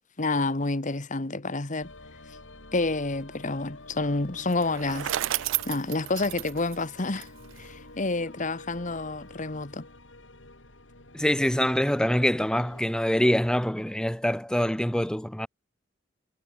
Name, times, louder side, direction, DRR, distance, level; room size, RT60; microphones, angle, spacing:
voice 1, 0.2-1.9 2.7-5.4 5.6-7.3 7.6-9.9, left 2 dB, 40° left, 1.4 m, -29 dB
sound 1, 1.8-12.8, left 2 dB, 90° left, 7.1 m, -48 dB
Bicycle, 4.5-7.7, right 15 dB, 85° right, 0.3 m, -32 dB
voice 2, 11.1-15.5, equal, 5° left, 1.0 m, -25 dB
head